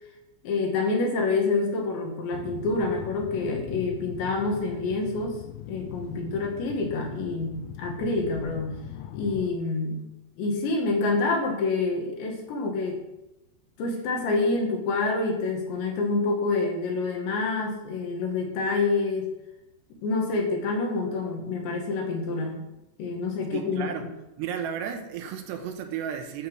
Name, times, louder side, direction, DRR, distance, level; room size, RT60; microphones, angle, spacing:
voice 1, 0.4-5.4 5.7-8.8 9.1-10.0 10.4-13.0 13.8-19.3 20.0-22.7 23.0-23.9, left 3 dB, 75° left, 2 dB, 4.0 m, -27 dB
sound 1, 2.3-9.5, left 10 dB, 90° left, 3.0 m, -40 dB
voice 2, 23.5-24.1 24.4-26.5, right 8 dB, 80° right, 6 dB, 2.9 m, -33 dB
13.0 x 6.5 x 6.3 m, 0.94 s
omnidirectional pair, 5.3 m